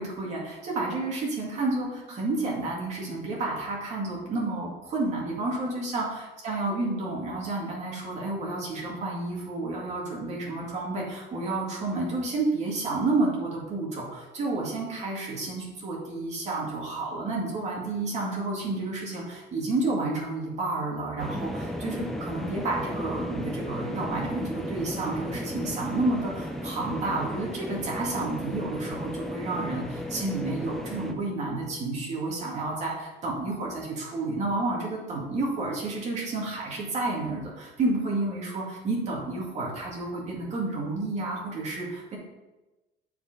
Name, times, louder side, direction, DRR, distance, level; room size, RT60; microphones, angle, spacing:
voice 1, 0.0-42.2, right 2 dB, 35° right, -3 dB, 2.1 m, -30 dB
sound 1, 21.2-31.1, left 1 dB, ahead, 0.4 m, -35 dB
7.0 x 4.9 x 5.0 m, 1.1 s
cardioid pair, 175°, 21 cm